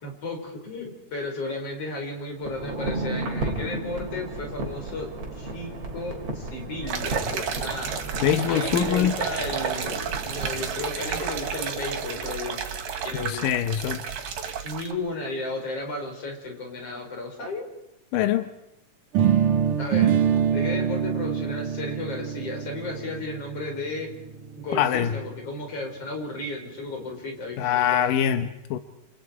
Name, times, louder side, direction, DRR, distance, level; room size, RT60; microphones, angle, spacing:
voice 1, 0.0-7.9 8.5-12.6 13.0-13.5 14.6-17.7 19.8-20.1 20.5-24.1 24.6-28.0, left 2 dB, 45° left, 2 dB, 6.3 m, -34 dB
sound 1, 2.4-11.5 11.7-11.8, right 2 dB, 50° right, 4.6 m, -33 dB
sound 2, 6.9-14.9, right 7 dB, 90° right, 3.9 m, -32 dB
voice 2, 8.2-9.1 13.2-14.0 18.1-18.4 24.7-25.1 27.6-28.8, left 10 dB, 90° left, 9 dB, 2.7 m, -23 dB
sound 3, 19.1-25.1, right 8 dB, 75° right, 2.8 m, -25 dB
29.0 x 28.0 x 4.8 m, 0.91 s
omnidirectional pair, 3.7 m